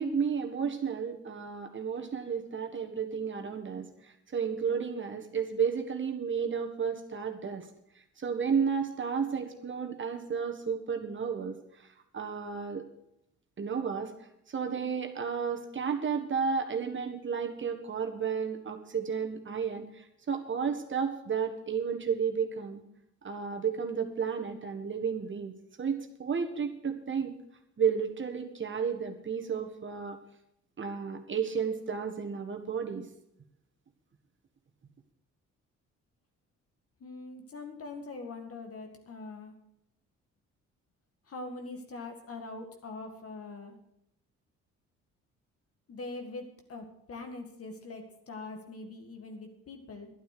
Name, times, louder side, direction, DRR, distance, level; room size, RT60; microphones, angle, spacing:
voice 1, 0.0-7.7 8.2-11.9 12.1-12.9 13.6-14.1 14.5-22.8 23.2-27.3 27.8-30.2 30.8-33.0, right 6 dB, 40° right, 5 dB, 1.6 m, -32 dB
voice 2, 37.0-39.5 41.3-43.8 45.9-50.1, left 3 dB, 50° left, 5 dB, 2.1 m, -43 dB
11.5 x 9.3 x 6.8 m, 0.79 s
cardioid pair, 90°, 30 cm